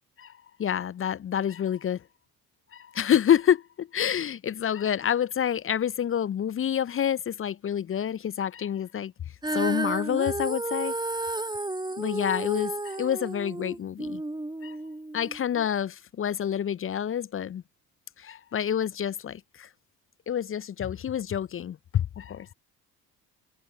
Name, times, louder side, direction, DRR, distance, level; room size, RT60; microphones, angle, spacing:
voice 1, 0.6-2.0 2.7-9.1 9.5-10.9 12.0-14.2 14.6-14.8 15.1-17.6 18.2-19.7 20.3-22.5, left 9 dB, 25° left, 0.7 m, -28 dB
Female singing, 9.4-15.7, right 2 dB, 10° right, 1.8 m, -32 dB
figure-of-eight pair, 55°, 48 cm